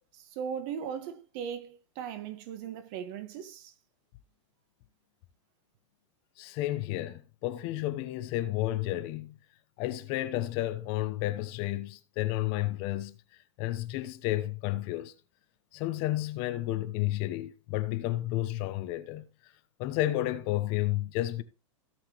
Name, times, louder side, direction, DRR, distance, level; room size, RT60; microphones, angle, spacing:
voice 1, 0.1-3.7, right 8 dB, 40° right, 1.3 m, -38 dB
voice 2, 6.4-9.3 9.8-13.2 13.6-15.1 15.7-19.2 19.8-21.4, left 15 dB, 35° left, 0.8 m, -31 dB
16.5 x 5.8 x 3.0 m
supercardioid pair, 155°, 16 cm